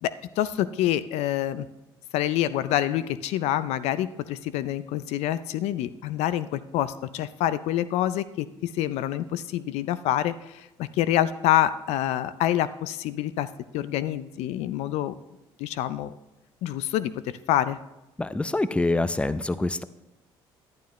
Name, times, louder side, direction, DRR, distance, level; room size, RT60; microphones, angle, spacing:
voice 1, 0.0-1.7 2.1-13.5 13.7-15.1 15.6-16.2 16.6-17.8, left 12 dB, 75° left, 15 dB, 0.4 m, -27 dB
voice 2, 18.2-19.8, left 2 dB, 10° left, 14 dB, 0.5 m, -25 dB
11.5 x 11.0 x 3.1 m, 0.98 s
supercardioid pair, 70°, 11 cm